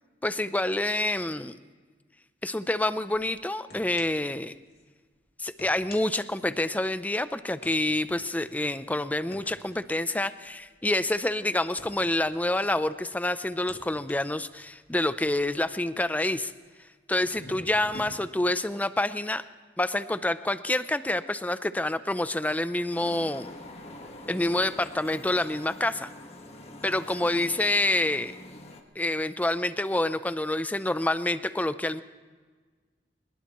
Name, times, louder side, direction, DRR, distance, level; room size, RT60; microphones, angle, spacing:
voice 1, 0.2-1.6 2.4-4.5 5.4-16.5 17.1-19.4 19.8-23.5 24.3-26.1 26.8-28.3 29.0-32.0, left 1 dB, 10° left, 13 dB, 0.5 m, -27 dB
sound 1, 3.1-3.3 3.7-4.4 4.7-4.8 5.4-7.0 7.6-13.1 13.5-16.6 17.1-18.1, left 2 dB, 65° left, 2.6 m, -50 dB
sound 2, 22.9-28.8, left 1 dB, 35° left, 1.5 m, -45 dB
22.5 x 21.0 x 3.1 m, 1.5 s
head